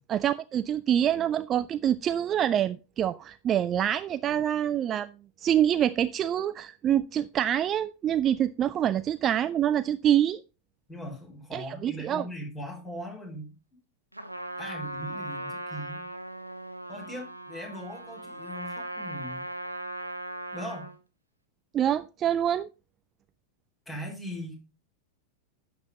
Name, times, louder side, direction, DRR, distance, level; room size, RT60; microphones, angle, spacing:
voice 1, 0.1-5.1 5.4-10.4 11.5-12.3 21.7-22.7, right 10 dB, 30° right, 0.4 m, -26 dB
voice 2, 10.9-13.5 14.6-16.0 16.9-19.5 20.5-20.9 23.9-24.6, equal, 10° left, 4.7 m, -39 dB
Trumpet, 14.1-21.0, right 1 dB, 85° right, 1.2 m, -38 dB
11.5 x 7.9 x 2.7 m
figure-of-eight pair, 90°, 0 cm